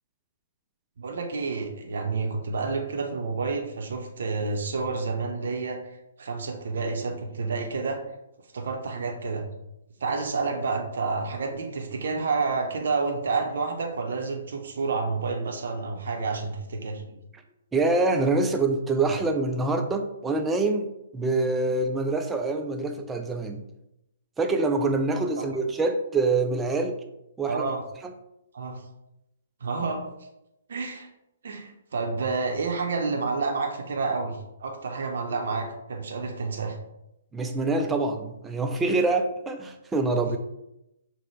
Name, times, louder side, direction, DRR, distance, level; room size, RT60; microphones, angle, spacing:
voice 1, 1.0-8.0 8.5-9.5 10.0-17.2 27.4-27.8 28.5-28.8 29.6-30.1 30.7-31.1 31.4-36.8 40.2-40.4, right 4 dB, 60° right, 2 dB, 0.6 m, -29 dB
voice 2, 17.7-20.9 21.1-23.6 24.4-27.0 27.4-27.7 28.0-28.1 37.3-40.4, right 3 dB, 10° right, 4 dB, 0.4 m, -25 dB
5.6 x 2.1 x 3.2 m, 0.87 s
figure-of-eight pair, 125°, 0 cm